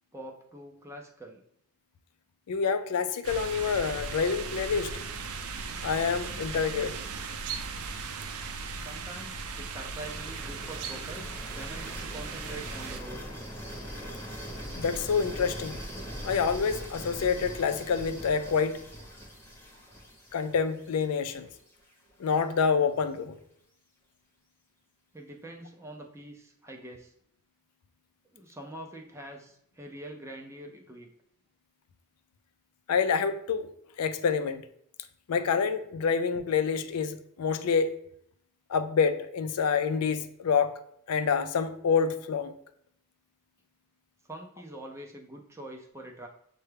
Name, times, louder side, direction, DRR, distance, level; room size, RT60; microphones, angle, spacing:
voice 1, 0.1-1.4 8.8-13.2 25.1-27.1 28.3-31.1 44.3-46.3, right 1 dB, 10° right, 2 dB, 0.4 m, -44 dB
voice 2, 2.5-4.9 5.8-6.9 14.7-15.8 16.2-18.8 20.3-21.5 22.2-23.3 32.9-33.7 34.0-34.6 35.3-37.9 38.7-40.7 41.1-42.5, left 6 dB, 85° left, 10 dB, 0.4 m, -27 dB
sound 1, 3.2-13.0, right 4 dB, 80° right, 0.4 m, -37 dB
sound 2, 10.0-21.9, equal, 10° left, 0.8 m, -42 dB
6.6 x 2.2 x 3.3 m, 0.70 s
head